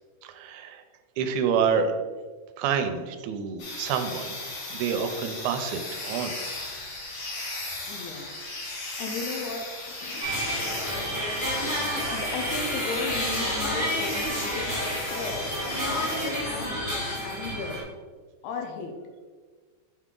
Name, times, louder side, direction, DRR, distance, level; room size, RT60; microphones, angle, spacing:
voice 1, 0.2-0.8 1.2-1.9 2.6-4.4 4.7-6.4 7.7-7.8 8.8-8.9, right 6 dB, 80° right, 7 dB, 2.0 m, -28 dB
sound 1, 3.6-16.3, left 2 dB, 55° left, 1.9 m, -36 dB
voice 2, 7.9-8.3 9.0-10.4 11.9-15.5 15.9-16.9 17.2-17.9 18.4-18.9, left 4 dB, 80° left, 3 dB, 2.1 m, -36 dB
sound 2, 10.2-17.8, equal, 25° left, 1.0 m, -30 dB
5.8 x 4.7 x 3.7 m, 1.5 s
omnidirectional pair, 3.5 m